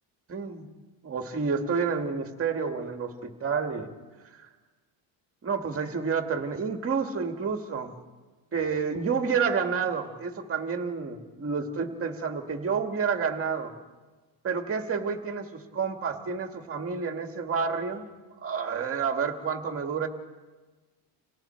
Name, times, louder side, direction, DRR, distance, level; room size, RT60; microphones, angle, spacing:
voice 1, 0.3-0.7 1.0-3.9 5.4-7.9 8.5-13.7 14.4-18.0 18.4-20.1, right 5 dB, 30° right, 5 dB, 1.9 m, -29 dB
29.5 x 27.5 x 4.5 m, 1.3 s
cardioid pair, 170°, 47 cm